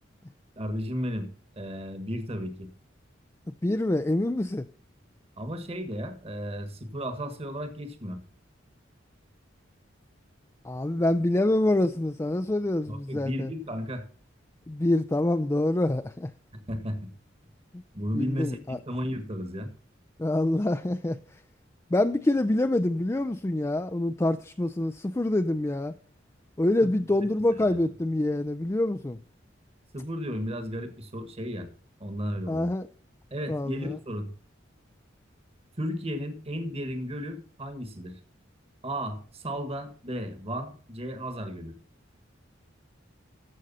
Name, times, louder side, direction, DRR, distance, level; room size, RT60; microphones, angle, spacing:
voice 1, 0.6-1.3 1.6-2.7 5.4-8.2 12.9-14.0 16.5-17.1 17.9-19.7 26.8-26.9 27.6-27.8 29.9-31.7 32.0-32.7 33.3-34.3 35.8-38.1 38.8-41.7, equal, 30° right, 1.5 m, -34 dB
voice 2, 3.6-4.6 10.6-13.5 14.7-16.3 17.7-17.8 18.1-18.8 20.2-21.2 21.9-25.9 26.6-29.2 32.5-32.9 33.5-34.0, left 1 dB, 15° left, 0.4 m, -26 dB
14.5 x 6.3 x 4.1 m
head